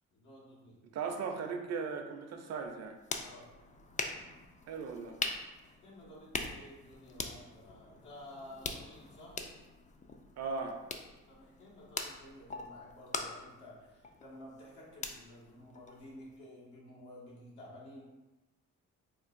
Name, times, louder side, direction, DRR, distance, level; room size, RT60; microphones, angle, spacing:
voice 1, 0.1-0.8 3.2-3.5 5.8-9.4 11.2-18.0, left 1 dB, 80° left, -6 dB, 1.4 m, -52 dB
voice 2, 0.9-3.0 4.7-5.2 10.4-10.8, right 5 dB, 60° right, 4 dB, 0.5 m, -37 dB
sound 1, 2.7-16.4, left 4 dB, 25° left, 0.3 m, -43 dB
4.5 x 2.4 x 2.5 m, 1.1 s
cardioid pair, 90°, 30 cm